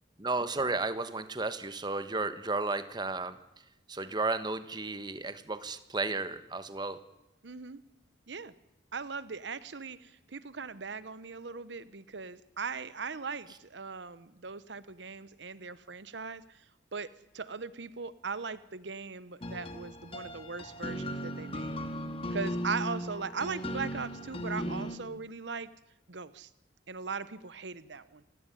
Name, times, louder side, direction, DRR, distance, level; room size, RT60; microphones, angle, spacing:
voice 1, 0.2-7.0, right 3 dB, 25° right, 12 dB, 1.2 m, -33 dB
voice 2, 7.4-7.8 8.3-8.5 8.9-16.6 16.9-17.1 17.3-21.8 22.3-25.7 26.1-26.5 26.9-28.2, right 5 dB, 75° right, 16 dB, 0.9 m, -39 dB
sound 1, 19.4-25.0, equal, 30° left, 2.0 m, -37 dB
27.5 x 16.5 x 9.9 m, 0.91 s
head